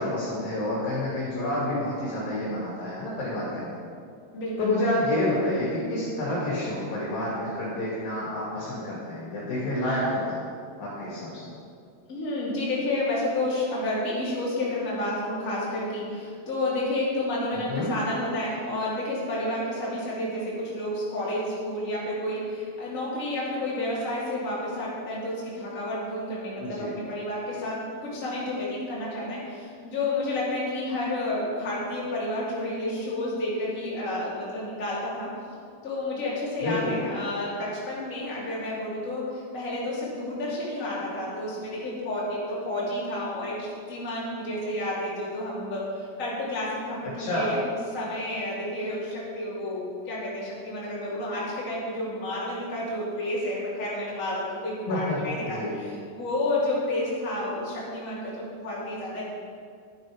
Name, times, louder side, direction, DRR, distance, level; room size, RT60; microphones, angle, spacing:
voice 1, 0.0-3.8 4.6-10.4 10.8-11.5 17.5-17.9 26.6-26.9 36.6-37.1 47.2-47.5 54.9-55.2 55.5-55.8, left 1 dB, 60° left, -7 dB, 4.0 m, -29 dB
voice 2, 4.3-4.7 12.1-35.3 35.8-59.2, left 1 dB, 20° left, -8 dB, 2.7 m, -30 dB
11.5 x 9.0 x 5.0 m, 2.3 s
omnidirectional pair, 4.8 m